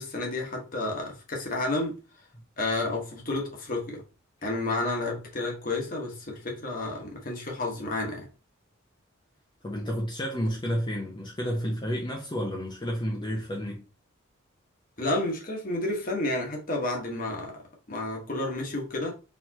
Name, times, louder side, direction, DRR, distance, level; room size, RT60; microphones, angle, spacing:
voice 1, 0.0-2.0 2.6-4.0 4.4-8.3 15.0-17.6 17.9-19.1, left 2 dB, 40° left, 1.3 m, -31 dB
voice 2, 9.6-13.8, equal, 20° left, 0.7 m, -31 dB
4.4 x 3.5 x 2.9 m
head